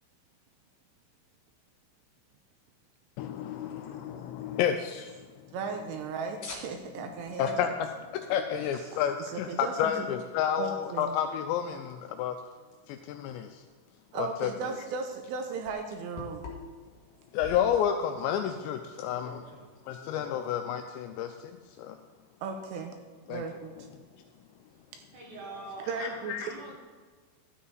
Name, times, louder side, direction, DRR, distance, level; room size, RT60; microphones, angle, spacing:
voice 1, 3.2-5.6 7.4-7.7 8.1-12.4 12.9-13.6 14.2-14.8 17.3-19.4 19.8-22.0 23.3-23.4 24.1-24.2 26.0-26.5, left 9 dB, 85° left, 6 dB, 2.5 m, -31 dB
voice 2, 5.5-7.8 9.3-10.1 10.6-11.2 14.1-16.5 22.4-22.9 23.3-23.9 24.9-25.0 25.9-26.5, right 5 dB, 80° right, 5 dB, 2.7 m, -36 dB
sound 1, 6.1-7.5 8.2-8.3 8.6-10.7 11.1-11.2 11.9-12.0 12.4-12.5 14.5-15.3 15.6-16.9 17.3-17.8 19.0-20.4, left 4 dB, 55° left, 3.0 m, -45 dB
voice 3, 25.1-26.8, right 2 dB, 65° right, -3 dB, 2.1 m, -44 dB
12.5 x 8.2 x 3.9 m, 1.5 s
omnidirectional pair, 5.4 m